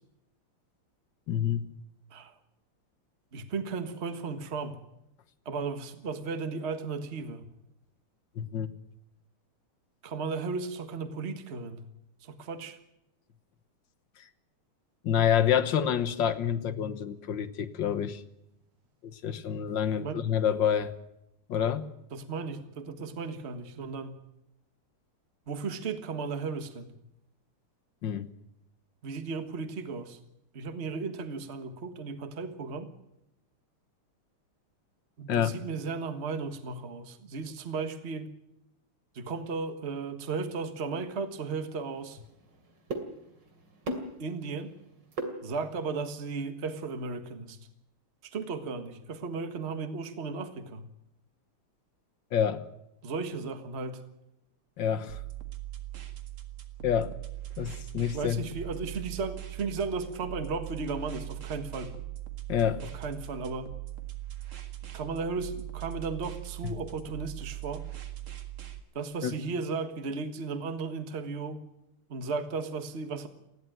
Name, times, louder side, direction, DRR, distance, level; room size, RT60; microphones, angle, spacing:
voice 1, 1.3-1.7 8.4-8.7 15.0-18.2 19.0-20.9 21.5-21.9 28.0-28.3 35.3-35.5 52.3-52.6 54.8-55.2 56.8-57.1 57.6-58.4 62.5-62.8 66.6-66.7 69.2-69.3, left 9 dB, 60° left, 11 dB, 1.8 m, -27 dB
voice 2, 3.3-4.8 5.4-7.4 10.0-11.8 12.2-12.8 20.0-20.2 22.1-24.2 25.5-26.9 29.0-30.2 30.5-32.9 35.2-38.3 39.1-42.2 44.2-44.8 45.4-47.6 48.2-50.8 53.0-54.0 58.1-61.9 62.8-63.7 64.9-67.8 68.9-71.6 72.1-73.3, right 4 dB, 35° right, 9 dB, 1.6 m, -35 dB
sound 1, 40.9-46.0, right 2 dB, 55° right, 3.3 m, -41 dB
sound 2, 55.1-68.8, right 14 dB, 75° right, 2.8 m, -41 dB
20.0 x 16.0 x 9.2 m, 0.83 s
omnidirectional pair, 2.4 m